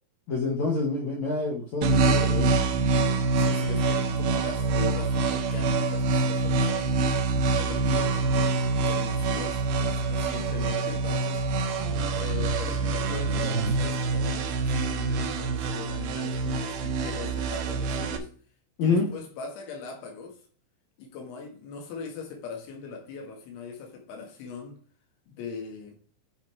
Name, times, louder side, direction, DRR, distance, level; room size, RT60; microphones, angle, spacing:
voice 1, 0.3-2.6 18.8-19.1, left 3 dB, 70° left, 1.7 m, -27 dB
sound 1, 1.8-18.2, right 3 dB, 75° right, 2.6 m, -26 dB
voice 2, 3.4-7.0 7.5-11.4 12.2-18.3 18.8-20.4 21.0-24.8 25.3-26.0, left 5 dB, 85° left, 4.3 m, -40 dB
10.0 x 3.9 x 4.4 m
omnidirectional pair, 5.3 m